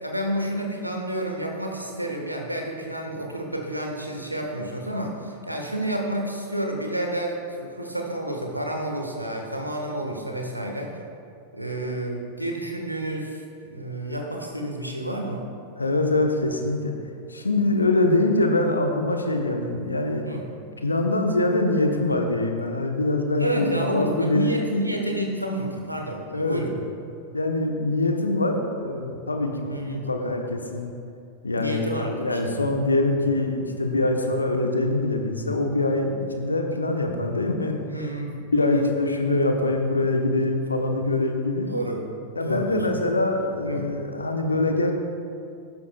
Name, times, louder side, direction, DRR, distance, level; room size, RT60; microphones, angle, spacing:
voice 1, 0.0-10.9 11.5-15.4 20.2-20.5 23.4-26.7 29.7-30.0 31.5-32.7 37.8-38.9 41.7-42.0 42.4-43.0 43.7-43.9, right 1 dB, 85° right, 1 dB, 1.4 m, -30 dB
voice 2, 15.8-16.9 17.3-20.3 20.8-24.5 26.3-26.9 27.3-30.9 31.4-37.7 38.0-38.1 38.5-41.7 42.4-44.9, left 2 dB, 80° left, 4 dB, 1.0 m, -24 dB
12.0 x 11.5 x 2.3 m, 2.4 s
figure-of-eight pair, 90°, 0 cm